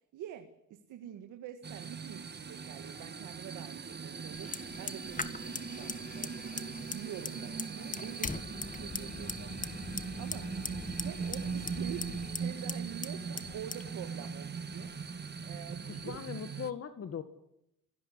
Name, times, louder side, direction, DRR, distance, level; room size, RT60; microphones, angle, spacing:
voice 1, 0.1-6.6 6.9-9.7 10.2-10.5 11.0-14.9 15.4-16.4, right 10 dB, 85° right, 7 dB, 1.9 m, -46 dB
sound 1, 1.6-16.7, right 5 dB, 35° right, 1.6 m, -40 dB
sound 2, 2.6-14.6, right 2 dB, ahead, 5.1 m, -65 dB
Fire, 4.3-16.2, left 4 dB, 25° left, 1.7 m, -42 dB
voice 2, 15.9-17.2, left 7 dB, 50° left, 9 dB, 1.9 m, -39 dB
26.0 x 17.5 x 10.0 m, 0.81 s
cardioid pair, 90°, 30 cm